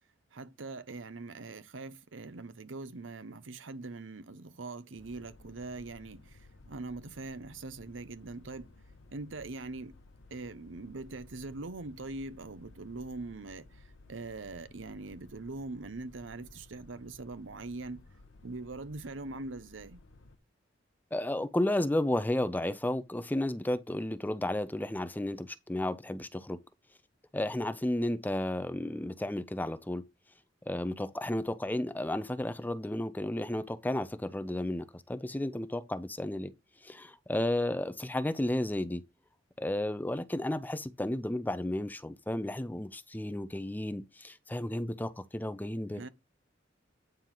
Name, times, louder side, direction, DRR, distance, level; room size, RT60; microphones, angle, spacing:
voice 1, 0.3-8.7 9.1-10.0 10.3-18.0 18.4-20.0 46.0-46.1, right 3 dB, 80° right, 0.8 m, -42 dB
sound 1, 5.0-20.4, left 2 dB, 80° left, 1.1 m, -56 dB
voice 2, 21.1-26.6 27.3-30.0 30.7-36.5 36.8-39.0 39.6-46.0, left 1 dB, 10° left, 0.5 m, -33 dB
9.2 x 4.5 x 3.8 m
head